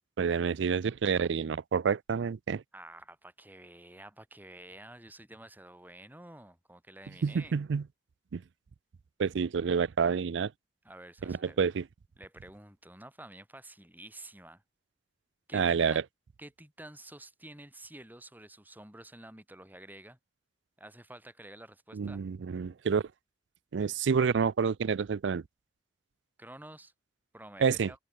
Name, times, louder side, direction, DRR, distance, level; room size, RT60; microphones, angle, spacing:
voice 1, 0.2-2.6 7.2-7.8 8.3-8.4 9.2-10.5 11.2-11.8 15.5-16.0 21.9-23.0 23.7-25.4 27.6-27.9, right 6 dB, 80° right, 0.4 m, -28 dB
voice 2, 2.7-7.5 10.8-11.7 12.2-14.6 15.5-16.0 16.4-20.2 20.8-22.2 26.4-26.9 27.3-28.0, right 1 dB, 10° right, 7.3 m, -50 dB
open air
head